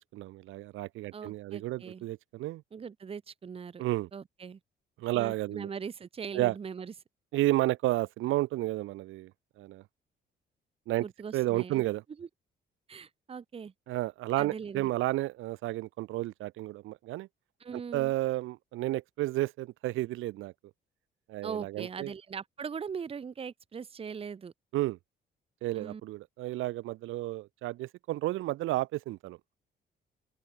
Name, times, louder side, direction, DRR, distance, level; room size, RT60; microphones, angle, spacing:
voice 1, 0.0-2.6 3.8-4.1 5.0-5.7 6.3-6.5 7.3-9.3 9.6-9.8 10.9-11.0 11.3-12.0 13.9-17.3 17.9-20.5 21.3-22.1 24.7-25.0 25.6-29.4, right 17 dB, 85° right, 0.7 m, -31 dB
voice 2, 1.1-2.0 2.7-3.8 4.1-4.6 5.1-6.9 11.0-11.8 12.2-12.3 12.9-13.7 14.4-14.9 17.6-18.1 21.4-24.5 25.7-26.0, right 6 dB, 30° right, 0.6 m, -40 dB
open air
cardioid pair, 90°, 20 cm